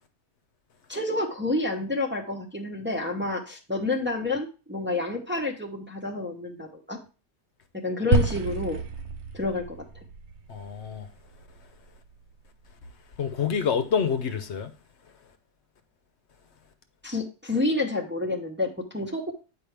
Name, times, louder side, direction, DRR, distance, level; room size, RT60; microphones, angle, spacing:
voice 1, 0.9-7.0 7.7-8.8 9.3-9.9 17.0-19.3, left 2 dB, 10° right, 0.9 m, -29 dB
sound 1, 8.1-12.5, right 4 dB, 70° right, 1.2 m, -30 dB
voice 2, 10.5-11.1 13.2-14.7, left 7 dB, 70° left, 1.1 m, -27 dB
8.5 x 4.8 x 3.3 m
omnidirectional pair, 1.2 m